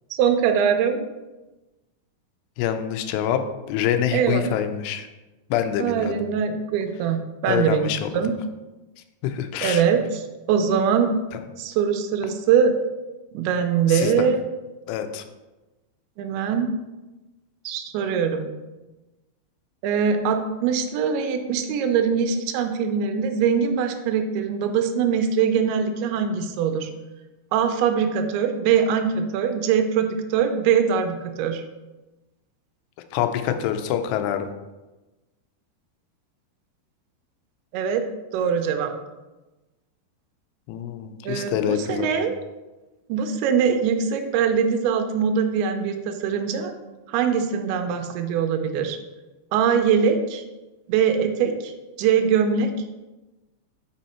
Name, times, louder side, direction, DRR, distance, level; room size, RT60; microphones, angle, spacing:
voice 1, 0.1-1.0 4.1-4.4 5.8-7.9 8.1-8.3 9.6-11.1 11.6-12.7 13.3-14.4 16.2-16.7 17.7-18.5 19.8-26.9 27.5-31.6 37.7-38.0 38.3-38.9 41.2-42.3 43.1-46.7 47.1-49.0 49.5-50.4 50.9-52.7, right 7 dB, 80° right, 6 dB, 2.4 m, -22 dB
voice 2, 2.6-3.4 3.7-5.1 5.5-6.2 7.5-8.1 9.2-9.8 13.9-14.3 14.9-15.2 33.1-34.5 40.7-42.3, left 10 dB, 80° left, 8 dB, 2.5 m, -25 dB
6.2 x 5.6 x 4.3 m, 1.1 s
omnidirectional pair, 5.1 m